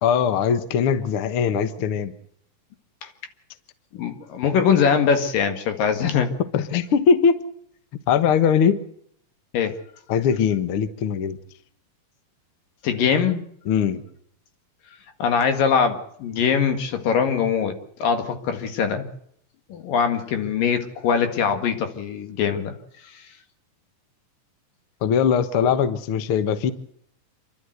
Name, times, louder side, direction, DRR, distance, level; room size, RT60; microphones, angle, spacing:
voice 1, 0.0-2.1 6.5-7.4 8.1-8.8 10.1-11.4 13.7-14.0 25.0-26.7, left 7 dB, 60° left, 12 dB, 1.5 m, -20 dB
voice 2, 3.9-6.3 9.5-9.8 12.8-13.4 15.2-19.1 19.7-22.7 23.0-23.2 25.7-25.8, left 7 dB, 80° left, 7 dB, 3.6 m, -22 dB
28.0 x 12.0 x 7.9 m, 0.68 s
omnidirectional pair, 3.9 m